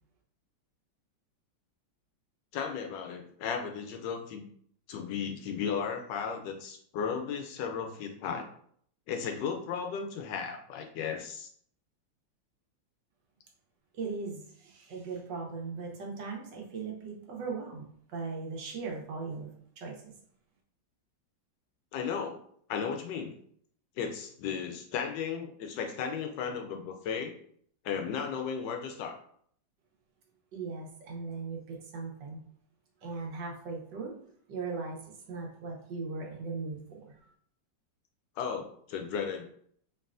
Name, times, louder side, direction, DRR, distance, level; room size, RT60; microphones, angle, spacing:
voice 1, 2.5-4.5 4.9-8.5 9.1-11.5 21.9-22.4 22.7-23.3 24.0-27.3 27.8-29.2 38.4-39.5, left 6 dB, 75° left, 4 dB, 1.2 m, -35 dB
voice 2, 13.9-19.5 19.8-20.1 30.5-32.4 33.0-34.1 34.5-37.1, right 4 dB, 70° right, 0 dB, 1.4 m, -38 dB
4.6 x 3.2 x 2.4 m, 0.62 s
omnidirectional pair, 2.1 m